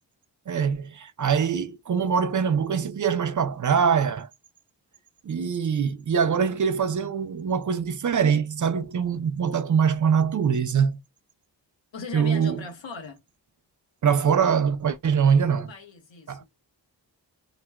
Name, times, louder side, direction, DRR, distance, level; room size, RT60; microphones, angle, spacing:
voice 1, 0.5-4.3 5.2-11.0 12.1-12.6 14.0-15.7 16.3-16.4, right 7 dB, 45° right, 0.4 m, -23 dB
voice 2, 11.9-13.2 15.7-16.4, left 4 dB, 85° left, 1.1 m, -39 dB
3.0 x 2.1 x 2.2 m
cardioid pair, 45°, 44 cm